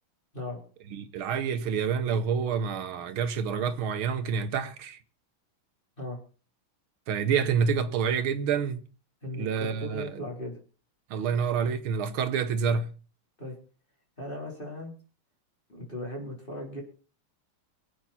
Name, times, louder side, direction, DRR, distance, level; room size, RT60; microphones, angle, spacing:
voice 1, 0.9-5.0 7.1-8.8 9.3-10.1 11.1-12.9, right 6 dB, 70° right, 1.9 m, -28 dB
voice 2, 9.2-10.6 13.4-13.5 14.2-14.9 15.7-16.8, left 1 dB, 25° left, 4.0 m, -37 dB
24.0 x 8.4 x 4.3 m
omnidirectional pair, 2.4 m